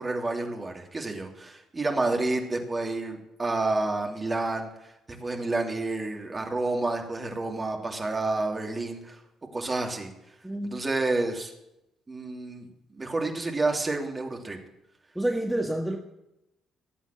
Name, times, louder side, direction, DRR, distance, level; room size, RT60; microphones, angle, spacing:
voice 1, 0.0-9.2 9.5-10.1 10.6-11.5 12.1-14.6, right 2 dB, 25° right, 2 dB, 3.0 m, -29 dB
voice 2, 10.4-10.8 15.2-16.0, right 1 dB, 5° right, 1 dB, 1.7 m, -28 dB
17.5 x 8.1 x 7.8 m, 0.87 s
figure-of-eight pair, 45°, 0 cm